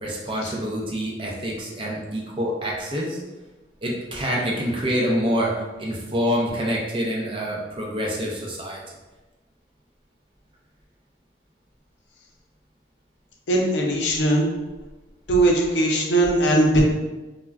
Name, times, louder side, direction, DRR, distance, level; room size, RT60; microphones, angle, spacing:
voice 1, 0.0-3.2 3.8-5.5 5.8-8.8, equal, 30° right, -2 dB, 0.5 m, -26 dB
voice 2, 13.5-14.5 15.3-16.8, right 1 dB, 85° left, -1 dB, 0.5 m, -19 dB
2.3 x 2.1 x 3.3 m, 1.1 s
head